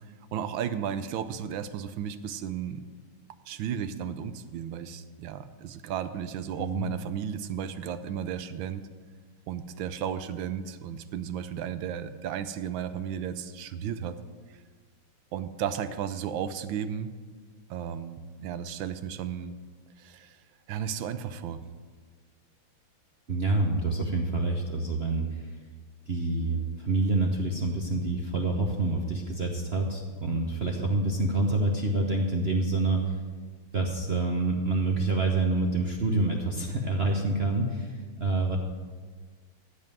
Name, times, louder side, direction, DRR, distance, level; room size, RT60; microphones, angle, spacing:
voice 1, 0.3-2.8 3.5-8.8 9.5-14.2 15.3-17.1 17.7-19.5 20.0-20.4 20.7-21.6, right 8 dB, 75° right, 11 dB, 1.3 m, -34 dB
voice 2, 6.6-6.9 23.3-25.5 26.1-33.2 33.7-38.6, right 2 dB, 55° right, 1 dB, 0.7 m, -27 dB
14.5 x 5.5 x 7.5 m, 1.5 s
omnidirectional pair, 2.4 m